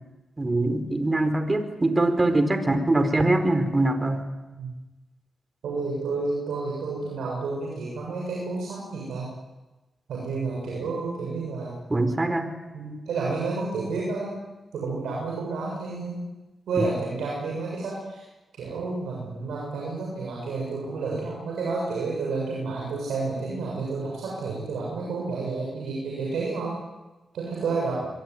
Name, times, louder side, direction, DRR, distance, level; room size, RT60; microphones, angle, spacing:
voice 1, 0.4-4.2 11.9-12.5 16.8-16.9, right 2 dB, 30° right, 9 dB, 4.6 m, -23 dB
voice 2, 5.6-9.3 10.1-11.7 12.7-14.3 14.7-16.2 16.7-18.2 18.6-26.7 27.3-28.0, right 3 dB, 90° right, -3 dB, 7.2 m, -30 dB
25.0 x 23.5 x 9.9 m, 1.1 s
supercardioid pair, 45°, 0 cm